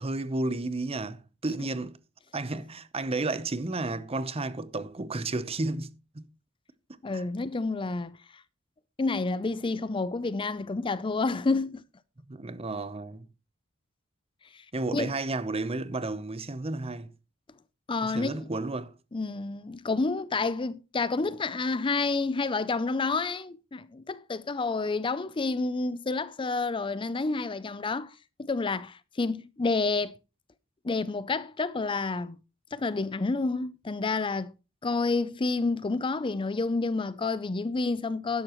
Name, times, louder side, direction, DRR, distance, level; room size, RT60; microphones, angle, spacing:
voice 1, 0.0-1.9 2.3-6.3 7.1-7.2 12.3-13.3 14.7-17.1 18.0-18.9, right 2 dB, 30° right, 0.8 m, -32 dB
voice 2, 7.0-8.2 9.0-11.8 14.5-14.6 14.9-15.1 17.9-18.5 19.1-30.1 30.8-32.4 32.7-34.5 34.8-38.4, left 3 dB, 25° left, 0.5 m, -29 dB
12.5 x 11.0 x 3.0 m
head